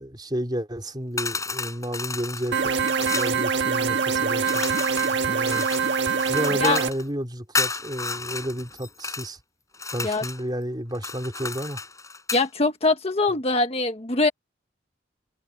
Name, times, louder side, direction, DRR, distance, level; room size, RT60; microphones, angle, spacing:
voice 1, 0.0-2.8 3.1-4.6 5.1-5.7 6.3-9.4 9.9-11.8, equal, 25° right, 4.2 m, -31 dB
sound 1, 1.2-3.4 4.5-7.0 7.5-9.3 9.7-10.4 10.9-12.5, left 4 dB, 20° left, 6.9 m, -32 dB
sound 2, 2.5-6.9, right 5 dB, 75° right, 1.7 m, -24 dB
voice 2, 12.3-14.3, left 3 dB, 35° left, 1.4 m, -22 dB
head